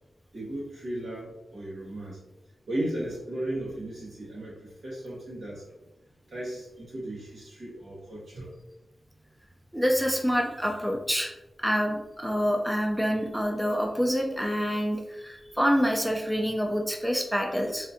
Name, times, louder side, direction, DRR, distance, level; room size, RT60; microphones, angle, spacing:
voice 1, 0.3-2.2 2.7-5.6 6.3-8.5, right 1 dB, 85° right, -6 dB, 1.5 m, -35 dB
voice 2, 9.7-11.3 11.6-17.9, equal, 5° right, 2 dB, 0.4 m, -27 dB
4.2 x 2.6 x 2.5 m, 1.0 s
wide cardioid pair, 95°, 0 cm